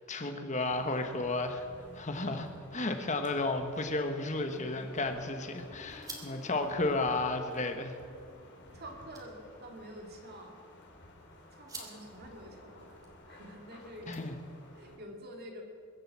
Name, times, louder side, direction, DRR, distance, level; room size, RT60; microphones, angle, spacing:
voice 1, 0.1-1.6 1.9-7.9 14.1-14.3, left 2 dB, 35° left, 6 dB, 1.3 m, -33 dB
sound 1, 0.7-15.0, left 1 dB, 55° left, 2.5 m, -53 dB
sound 2, 4.4-14.8, right 3 dB, 15° right, 2.1 m, -54 dB
voice 2, 8.7-10.6 11.5-14.1 14.7-15.6, equal, 50° right, 2 dB, 2.4 m, -48 dB
22.0 x 7.7 x 7.5 m, 2.3 s
head